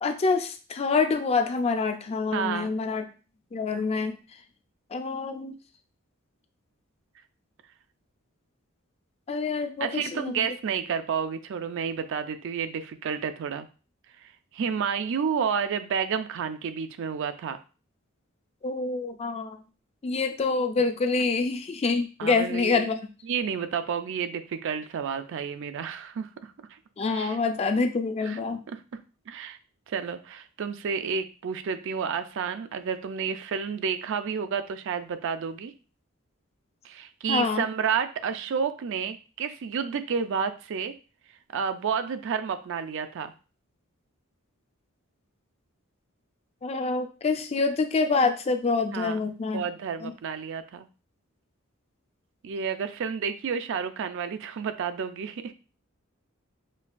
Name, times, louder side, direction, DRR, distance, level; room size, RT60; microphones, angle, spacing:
voice 1, 0.0-3.1 3.5-4.2 4.9-5.5 9.3-10.5 18.6-19.6 20.0-23.0 27.0-28.6 37.3-37.6 46.6-49.7 50.0-50.1, left 4 dB, 30° left, 7 dB, 0.3 m, -26 dB
voice 2, 2.3-2.7 9.8-13.7 14.2-17.6 22.2-22.9 23.2-26.8 27.1-27.4 28.2-28.4 28.7-28.8 29.3-29.6 29.9-35.7 36.8-40.9 41.5-43.3 48.9-49.2 49.5-50.9 52.4-55.5, right 6 dB, 65° right, 10 dB, 0.4 m, -30 dB
5.2 x 2.3 x 2.5 m, 0.35 s
head